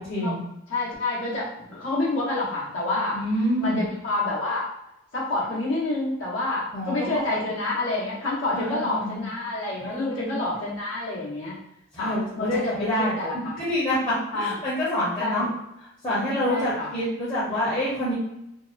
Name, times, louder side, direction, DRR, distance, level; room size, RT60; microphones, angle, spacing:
voice 1, 0.1-0.4 3.1-3.8 6.7-7.4 8.5-9.3 9.8-10.4 11.9-13.1 13.6-15.5 16.0-18.1, equal, 25° left, -9 dB, 0.8 m, -27 dB
voice 2, 0.7-3.2 3.6-4.7 5.1-11.6 12.0-13.5 14.3-14.5 15.2-15.5 16.5-16.9, left 2 dB, 70° left, -6 dB, 1.0 m, -28 dB
2.8 x 2.1 x 2.4 m, 0.83 s
head